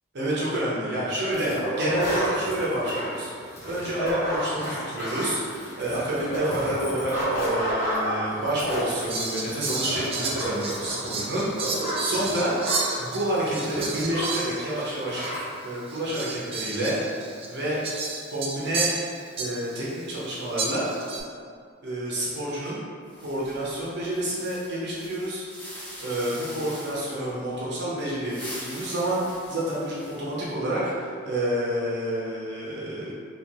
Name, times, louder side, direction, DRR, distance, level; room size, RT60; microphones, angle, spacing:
voice 1, 0.1-1.5 1.8-3.3 3.6-12.5 13.0-15.2 15.6-17.0 17.5-17.8 18.3-18.9 19.4-20.9 21.8-22.8 23.2-25.4 26.0-33.1, right 1 dB, 55° right, -7 dB, 0.7 m, -29 dB
sound 1, 1.3-14.5 14.8-14.9 15.1-15.4, right 1 dB, 40° left, 1.1 m, -30 dB
Fowl, 9.1-14.9 15.1-15.3 15.9-19.8 20.6-21.2, right 3 dB, 30° right, 0.3 m, -32 dB
sound 2, 23.1-27.3 28.1-30.4, equal, 10° left, 0.9 m, -42 dB
3.3 x 2.8 x 2.7 m, 2.2 s
head